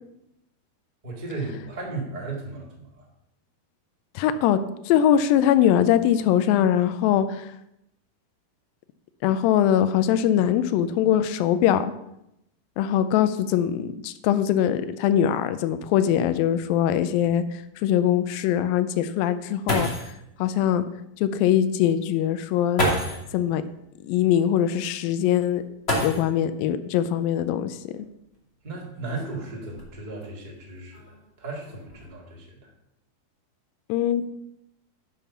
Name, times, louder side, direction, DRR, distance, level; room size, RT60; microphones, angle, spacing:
voice 1, 1.0-3.1 28.6-32.7, right 3 dB, 25° right, -3 dB, 1.0 m, -35 dB
voice 2, 4.2-7.5 9.2-11.9 12.8-19.9 20.4-20.8 21.2-22.8 23.3-23.6 24.0-25.6 26.0-27.9 33.9-34.3, left 10 dB, 85° left, 11 dB, 2.0 m, -22 dB
sound 1, 19.3-19.4 19.7-20.2 21.5-21.6 22.7-23.3 25.8-26.6 27.9-28.0 28.8-30.2 30.9-31.3 31.6-32.0, equal, 20° left, 1.8 m, -28 dB
11.0 x 5.8 x 5.7 m, 0.82 s
omnidirectional pair, 4.7 m